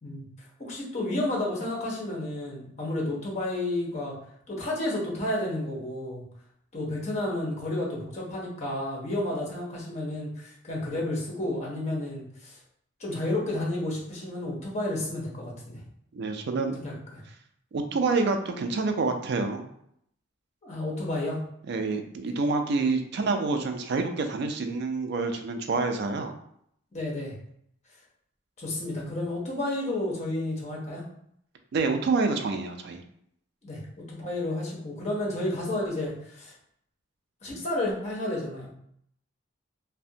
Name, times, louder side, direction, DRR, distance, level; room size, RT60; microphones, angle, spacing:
voice 1, 0.6-4.2 4.5-6.2 6.7-12.6 13.0-15.8 16.8-17.2 20.6-21.4 26.9-27.3 28.6-31.0 33.6-36.5 37.4-38.7, left 1 dB, 35° left, -4 dB, 0.7 m, -31 dB
voice 2, 16.1-16.8 17.7-19.7 21.7-26.4 31.7-33.0, right 3 dB, 55° right, 5 dB, 0.3 m, -27 dB
2.5 x 2.1 x 2.7 m, 0.71 s
head